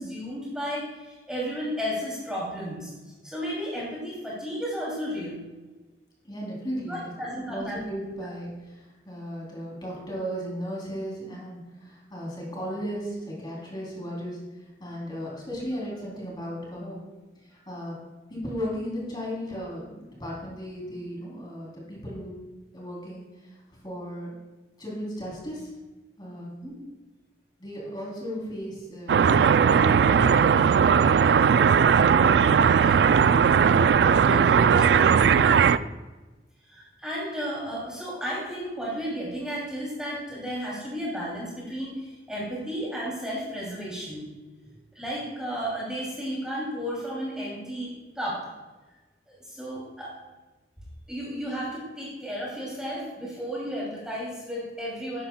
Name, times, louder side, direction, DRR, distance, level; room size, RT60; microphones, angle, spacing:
voice 1, 0.0-2.9 3.2-5.4 6.9-7.8 26.6-26.8 32.7-33.4 34.2-35.7 36.7-44.3 44.9-48.4 49.3-50.1 51.1-55.3, equal, 5° right, -6 dB, 2.7 m, -33 dB
voice 2, 6.2-17.0 17.4-18.0 18.3-22.3 22.7-24.3 24.8-25.7 26.2-26.5 27.6-30.5, equal, 25° left, -4 dB, 3.2 m, -36 dB
sound 1, 29.1-35.8, right 7 dB, 70° right, 0.3 m, -18 dB
11.5 x 10.0 x 2.2 m, 1.2 s
head